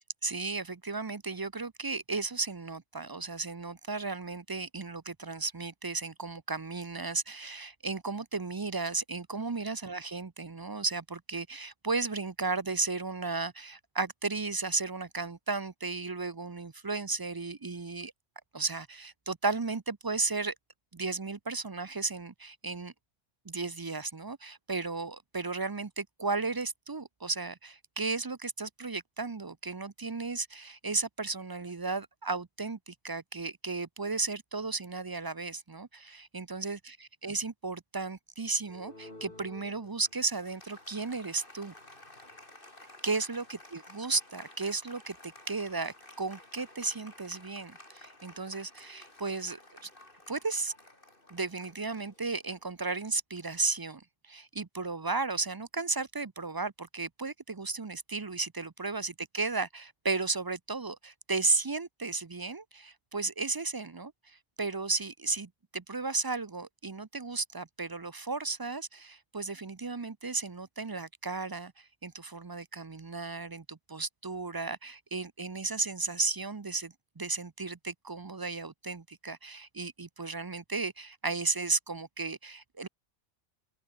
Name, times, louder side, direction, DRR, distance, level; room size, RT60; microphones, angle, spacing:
voice 1, 0.2-18.1 18.5-20.5 20.9-22.9 23.5-41.7 43.0-49.9 50.3-50.7 51.3-82.9, right 3 dB, 30° right, 0.4 m, -34 dB
Applause, 38.6-52.7, left 1 dB, 45° left, 5.3 m, -53 dB
open air
omnidirectional pair, 1.2 m